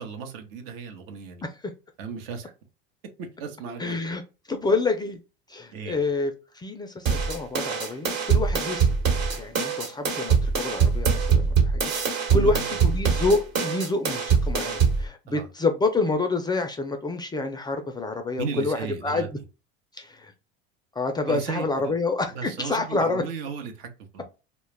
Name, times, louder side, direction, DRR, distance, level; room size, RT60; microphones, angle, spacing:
voice 1, 0.0-1.4 2.0-2.5 3.2-4.0 5.7-6.0 12.3-12.8 15.3-15.5 18.4-19.3 21.3-21.9 22.3-24.2, right 5 dB, 75° right, 0.8 m, -35 dB
voice 2, 3.8-4.2 4.5-5.2 5.5-8.9 9.4-18.8 19.0-19.3 19.9-20.3 21.0-23.2, left 3 dB, 15° left, 0.3 m, -27 dB
sound 1, 7.1-15.1, right 6 dB, 55° right, 1.1 m, -23 dB
2.2 x 2.0 x 3.2 m
supercardioid pair, 95°, 30 cm